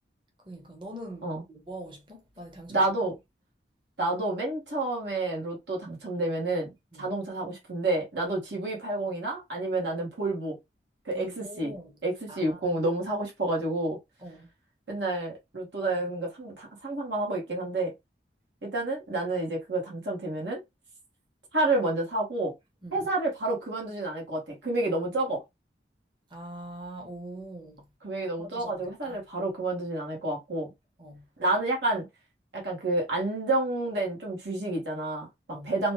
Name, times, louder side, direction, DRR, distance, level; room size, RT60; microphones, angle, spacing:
voice 1, 0.5-2.9 6.9-7.1 11.1-12.0 12.3-12.8 14.2-14.5 22.8-23.1 26.3-27.9 28.4-29.2 31.0-31.3 35.5-35.7, right 1 dB, 25° right, 0.7 m, -43 dB
voice 2, 2.7-3.2 4.0-6.7 7.0-10.6 11.0-11.7 12.0-14.0 14.9-17.9 18.6-20.6 21.5-22.5 22.9-25.4 28.0-30.7 31.4-32.1 32.5-35.9, right 2 dB, 85° right, 1.2 m, -29 dB
2.9 x 2.2 x 3.0 m
head